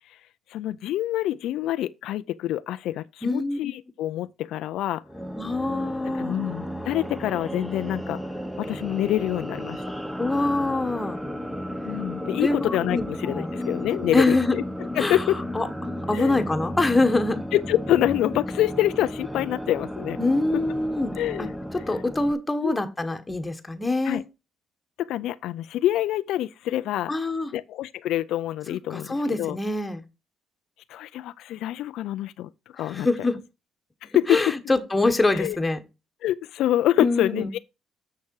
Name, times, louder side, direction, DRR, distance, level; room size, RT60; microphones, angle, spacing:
voice 1, 0.5-5.0 6.1-8.2 8.6-9.8 11.9-14.6 14.9-15.4 16.1-16.4 17.5-20.2 20.5-20.6 21.2-21.5 22.6-22.7 24.0-24.2 25.0-27.1 27.5-29.6 30.9-33.1 34.0-34.4 35.3-35.6 36.2-37.6, left 13 dB, 80° left, 0.4 m, -26 dB
voice 2, 3.2-3.6 5.4-6.4 10.2-11.2 12.4-13.5 14.1-14.6 15.0-15.2 15.5-17.4 20.2-21.1 21.4-21.5 21.7-24.2 27.1-27.5 28.9-30.0 32.9-33.4 34.3-35.8 37.0-37.5, left 2 dB, 15° left, 1.4 m, -24 dB
sound 1, 5.0-22.3, equal, ahead, 1.0 m, -33 dB
7.0 x 6.5 x 4.7 m
cardioid pair, 100°, 0 cm